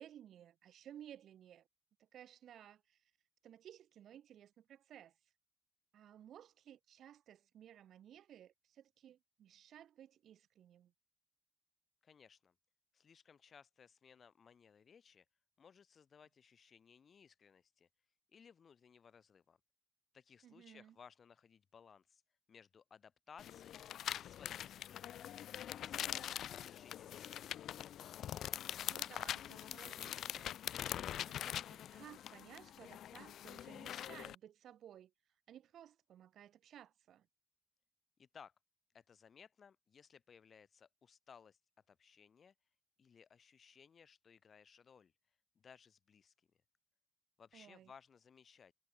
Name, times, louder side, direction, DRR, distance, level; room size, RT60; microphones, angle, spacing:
voice 1, 0.0-1.7 2.0-3.0 3.4-5.2 5.9-10.9 20.4-21.0 25.9-26.4 28.9-30.6 31.3-35.1 35.5-37.3 47.5-47.9, right 10 dB, 70° right, 4.4 m, -57 dB
voice 2, 12.0-12.5 12.9-15.2 15.6-17.9 18.3-19.6 20.1-22.2 22.5-23.8 24.1-25.2 25.6-27.5 38.2-38.5 38.9-41.6 41.9-42.5 43.0-45.1 45.5-46.3 47.4-48.7, left 6 dB, 50° left, 6.7 m, -62 dB
sound 1, 23.4-34.3, left 11 dB, 70° left, 0.8 m, -44 dB
cardioid pair, 90°, 0 cm